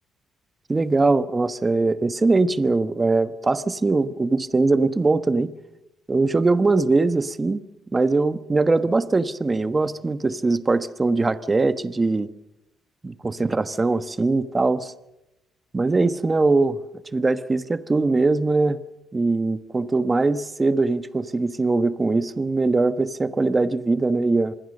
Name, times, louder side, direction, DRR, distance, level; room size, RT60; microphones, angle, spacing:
voice 1, 0.7-5.5 6.1-7.6 7.9-12.3 13.0-14.9 15.7-16.8 17.1-18.8 19.1-24.5, right 3 dB, 25° right, 12 dB, 1.2 m, -21 dB
26.0 x 21.0 x 6.6 m, 0.94 s
cardioid pair, 90°, 0 cm